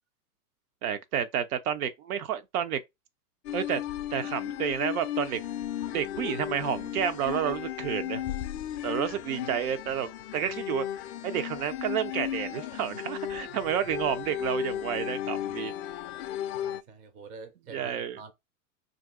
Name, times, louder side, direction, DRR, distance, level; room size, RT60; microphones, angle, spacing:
voice 1, 0.8-2.8 3.5-3.8 4.1-5.4 5.9-8.2 8.8-10.9 11.2-15.7 17.7-18.2, right 9 dB, 65° right, 0.7 m, -30 dB
sound 1, 3.4-16.8, left 11 dB, 45° left, 0.4 m, -35 dB
voice 2, 16.5-18.3, right 4 dB, 20° right, 0.4 m, -47 dB
2.7 x 2.6 x 3.6 m
hypercardioid pair, 125°, 47 cm